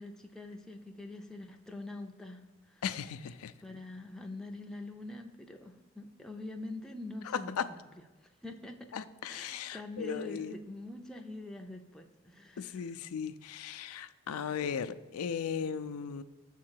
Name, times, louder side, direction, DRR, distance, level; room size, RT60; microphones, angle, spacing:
voice 1, 0.0-2.8 3.6-7.6 8.4-8.9 9.3-12.9, left 2 dB, 5° left, 3 dB, 0.4 m, -44 dB
voice 2, 2.8-3.5 7.2-7.7 8.9-10.6 12.6-16.2, left 7 dB, 90° left, 11 dB, 0.4 m, -37 dB
6.6 x 3.7 x 6.2 m, 1.2 s
head